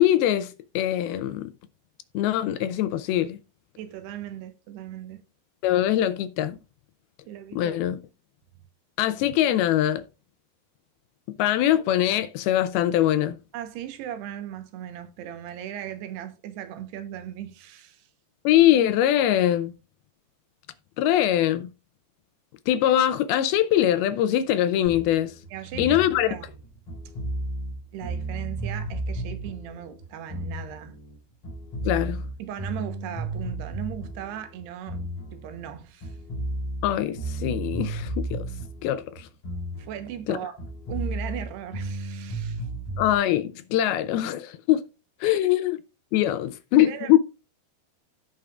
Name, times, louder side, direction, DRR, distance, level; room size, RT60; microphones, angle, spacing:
voice 1, 0.0-1.5 2.1-3.4 5.6-6.6 7.5-8.0 9.0-10.0 11.4-13.4 18.4-19.7 21.0-21.7 22.7-25.3 25.8-26.3 31.9-32.2 36.8-38.5 38.8-39.3 40.3-40.4 43.0-44.8 45.2-45.8 46.1-47.2, left 12 dB, 80° left, 2.3 m, -22 dB
voice 2, 3.8-5.2 7.3-7.8 13.5-18.1 25.5-26.5 27.9-31.0 32.4-36.2 39.8-40.5 40.9-42.7 45.2-45.4 46.7-47.2, right 10 dB, 85° right, 3.1 m, -37 dB
sound 1, 24.9-31.2 31.4-35.7 36.0-40.3 40.6-43.1, right 1 dB, 40° left, 3.9 m, -33 dB
16.5 x 5.7 x 2.4 m
omnidirectional pair, 4.7 m